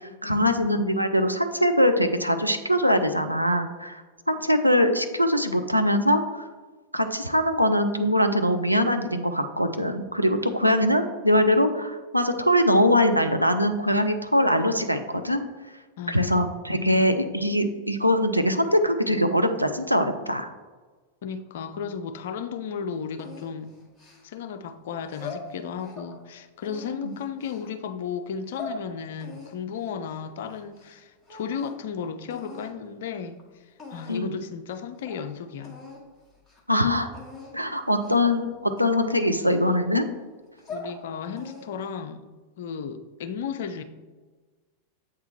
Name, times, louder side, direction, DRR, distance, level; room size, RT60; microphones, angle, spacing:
voice 1, 0.2-4.0 4.3-6.5 6.9-15.4 16.1-20.5 27.0-27.1 34.1-34.4 36.7-37.1 37.5-40.0, equal, 90° right, 6 dB, 0.5 m, -22 dB
voice 2, 16.0-16.3 16.7-17.1 21.2-23.7 24.2-33.4 33.9-35.8 40.7-42.2 42.6-43.8, left 7 dB, 55° left, 9 dB, 0.5 m, -34 dB
sound 1, 23.2-24.5 25.0-26.1 26.6-27.7 28.3-28.8 29.2-31.0 31.2-31.9 32.3-32.7 33.4-33.5 33.8-34.3 34.7-34.8 35.1-35.2 35.6-36.0 36.4-36.6 37.1-37.5 38.0-38.3 38.8-40.0 40.4-41.0 41.4-41.9, left 3 dB, 10° left, 1.6 m, -42 dB
7.8 x 3.7 x 4.3 m, 1.3 s
figure-of-eight pair, 90°, 0 cm